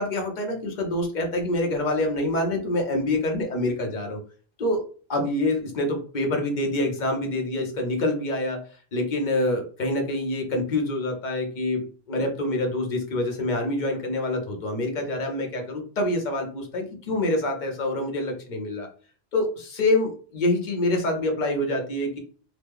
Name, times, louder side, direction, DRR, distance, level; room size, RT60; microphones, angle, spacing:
voice 1, 0.0-4.2 4.6-4.8 5.1-8.7 8.9-18.9 19.3-22.2, left 1 dB, 50° left, 3 dB, 0.9 m, -26 dB
3.0 x 2.1 x 3.5 m, 0.41 s
omnidirectional pair, 1.1 m